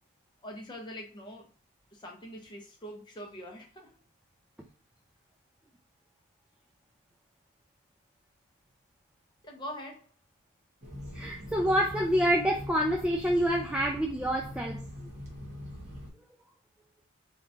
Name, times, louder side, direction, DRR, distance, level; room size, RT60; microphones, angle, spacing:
voice 1, 0.4-1.5 1.9-3.9 9.4-10.0, equal, 20° left, 0.8 m, -43 dB
sound 1, 10.8-16.1, left 1 dB, 30° right, 1.0 m, -42 dB
voice 2, 11.1-14.8, equal, 5° right, 0.3 m, -27 dB
3.9 x 3.3 x 2.7 m
head